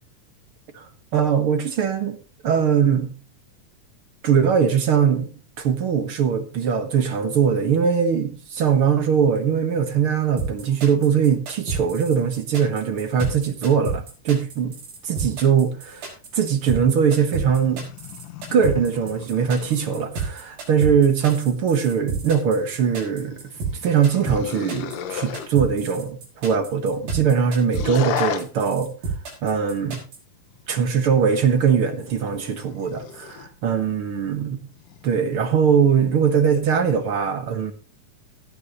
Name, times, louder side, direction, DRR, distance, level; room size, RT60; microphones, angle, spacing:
voice 1, 0.7-2.2 2.4-3.1 4.2-5.3 5.6-14.7 15.1-17.9 18.5-23.5 23.8-28.9 29.4-30.0 30.7-34.6 35.0-37.7, right 7 dB, 55° right, 1.6 m, -21 dB
sound 1, 10.4-30.2, right 5 dB, 85° right, 6.8 m, -30 dB
sound 2, 16.9-20.2 22.6-25.5 27.7-28.5 30.5-33.5 34.7-35.2, left 9 dB, 75° left, 2.8 m, -35 dB
16.5 x 10.5 x 3.0 m
omnidirectional pair, 3.9 m